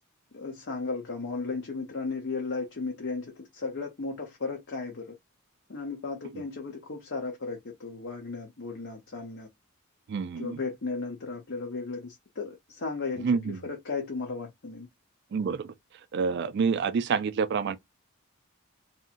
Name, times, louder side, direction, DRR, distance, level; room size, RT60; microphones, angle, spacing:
voice 1, 0.3-5.1 5.7-9.5 10.4-14.9, left 4 dB, 55° left, 0.7 m, -35 dB
voice 2, 10.1-10.6 13.2-13.6 15.3-15.7 16.1-17.8, right 5 dB, 50° right, 0.3 m, -27 dB
2.8 x 2.5 x 2.5 m
head